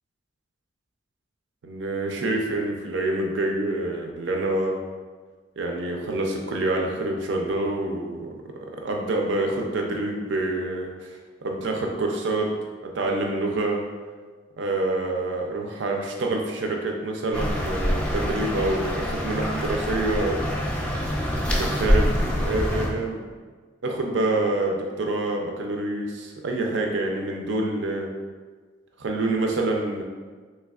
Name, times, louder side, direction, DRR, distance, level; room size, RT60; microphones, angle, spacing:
voice 1, 1.6-4.8 5.6-8.3 8.7-12.5 12.8-13.9 14.6-20.4 21.5-23.2 23.8-28.1 29.0-30.0, right 2 dB, 70° right, 1 dB, 0.5 m, -27 dB
sound 1, 17.3-22.9, equal, 5° left, 0.3 m, -25 dB
3.3 x 3.2 x 2.3 m, 1.5 s
head